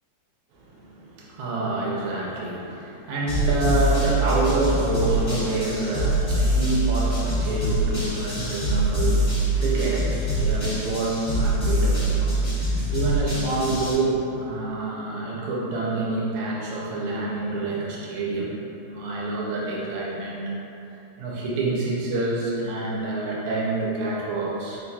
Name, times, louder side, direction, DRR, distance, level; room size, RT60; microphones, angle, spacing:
voice 1, 0.5-18.5 18.8-20.5 21.2-24.8, right 2 dB, 80° right, -6 dB, 2.0 m, -27 dB
sound 1, 3.3-13.9, right 1 dB, 40° left, 1.2 m, -24 dB
4.6 x 3.9 x 2.3 m, 3.0 s
omnidirectional pair, 3.3 m